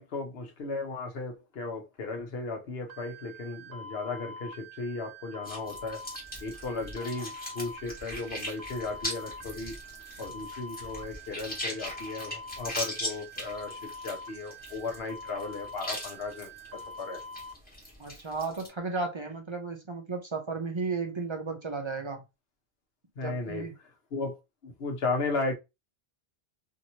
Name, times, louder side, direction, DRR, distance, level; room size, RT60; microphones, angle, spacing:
voice 1, 0.0-6.0 6.4-9.7 10.2-17.2 23.2-23.7 24.1-24.4 24.6-25.5, left 3 dB, 75° left, 1.1 m, -35 dB
sound 1, 2.9-17.5, left 1 dB, 65° right, 0.8 m, -45 dB
sound 2, 5.4-18.7, left 1 dB, 10° left, 1.3 m, -40 dB
voice 2, 18.0-22.2 23.2-23.7, right 4 dB, 40° right, 0.4 m, -34 dB
2.9 x 2.8 x 2.7 m
omnidirectional pair, 1.0 m